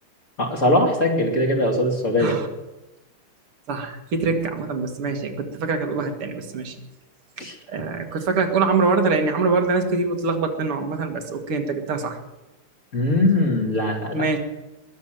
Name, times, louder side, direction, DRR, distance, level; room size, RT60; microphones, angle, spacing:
voice 1, 0.4-2.4 7.4-7.5 12.9-14.3, left 1 dB, 35° left, 1 dB, 2.8 m, -21 dB
voice 2, 3.7-6.7 7.7-12.2 14.1-14.4, right 4 dB, 80° right, 5 dB, 2.6 m, -24 dB
20.5 x 7.4 x 9.1 m, 0.99 s
omnidirectional pair, 2.4 m